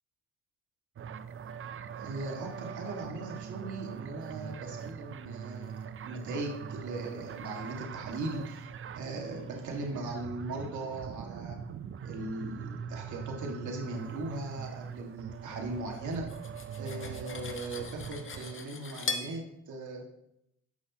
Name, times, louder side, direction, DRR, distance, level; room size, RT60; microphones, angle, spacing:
sound 1, 1.0-18.6, right 7 dB, 40° right, 0.6 m, -42 dB
voice 1, 2.0-5.7 6.0-11.6 12.0-16.3 16.8-20.0, right 2 dB, 65° right, 1 dB, 2.0 m, -39 dB
Cutlery silverware, 16.1-19.3, left 4 dB, 40° left, 1.4 m, -39 dB
13.0 x 5.6 x 2.9 m, 0.79 s
supercardioid pair, 60°, 32 cm